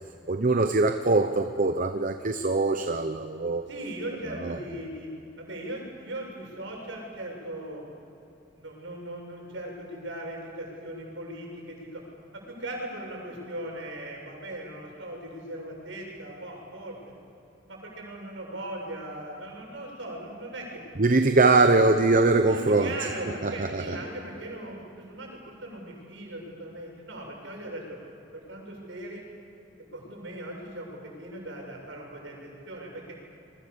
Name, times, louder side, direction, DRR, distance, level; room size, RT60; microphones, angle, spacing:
voice 1, 0.3-3.6 4.4-4.6 21.0-22.9 23.4-24.0, right 3 dB, 45° right, 7 dB, 0.9 m, -22 dB
voice 2, 3.7-5.1 5.4-7.8 8.5-12.0 12.3-17.0 17.7-20.8 22.5-28.0 28.3-29.2 29.9-33.2, right 1 dB, 75° right, -1 dB, 7.6 m, -39 dB
28.0 x 23.0 x 7.0 m, 2.8 s
head